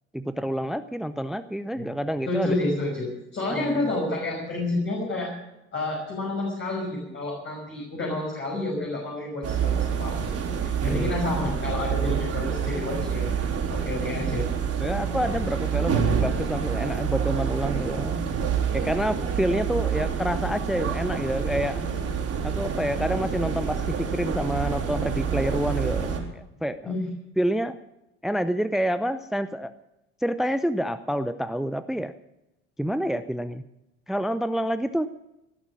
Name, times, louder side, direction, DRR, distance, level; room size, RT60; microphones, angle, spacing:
voice 1, 0.1-2.5 3.5-3.8 10.8-11.1 14.8-18.3 18.7-21.8 22.4-26.9 27.4-27.8 28.2-29.7 30.2-32.1 32.8-33.6 34.1-35.1, equal, ahead, 13 dB, 0.6 m, -28 dB
voice 2, 2.3-5.3 5.7-10.2 10.8-13.2 13.7-14.4 26.8-27.0, left 2 dB, 35° left, -2 dB, 5.7 m, -29 dB
sound 1, 9.4-26.2, right 7 dB, 45° right, 3.8 m, -27 dB
17.5 x 11.5 x 6.3 m, 0.90 s
hypercardioid pair, 60°, 34 cm